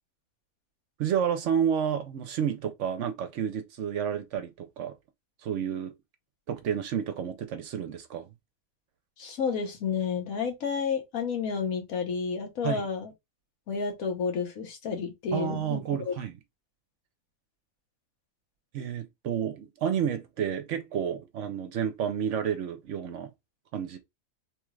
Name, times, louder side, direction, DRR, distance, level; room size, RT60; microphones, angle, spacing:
voice 1, 1.0-4.9 5.4-5.9 6.5-8.3 12.6-12.9 15.3-16.4 18.7-23.3 23.7-24.0, right 8 dB, 70° right, 0.9 m, -30 dB
voice 2, 9.2-13.1 13.7-16.1, left 5 dB, 85° left, 1.4 m, -31 dB
3.2 x 2.4 x 3.1 m
omnidirectional pair, 1.4 m